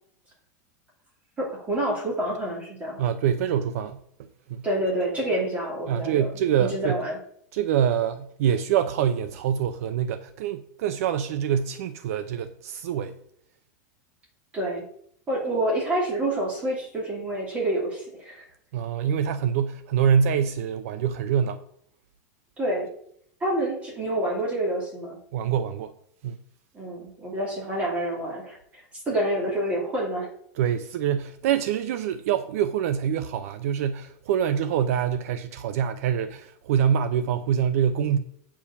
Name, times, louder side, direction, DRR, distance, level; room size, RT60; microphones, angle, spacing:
voice 1, 1.4-3.0 4.6-6.3 6.6-7.2 14.5-14.8 15.3-18.4 22.6-22.9 23.4-25.2 26.7-30.3, right 1 dB, 15° right, 2.8 m, -28 dB
voice 2, 3.0-4.0 4.5-4.7 5.9-7.0 7.5-13.2 18.7-21.6 25.3-25.9 26.2-26.4 30.6-38.2, right 8 dB, 60° right, 0.6 m, -25 dB
8.4 x 4.8 x 7.1 m
supercardioid pair, 175°, 9 cm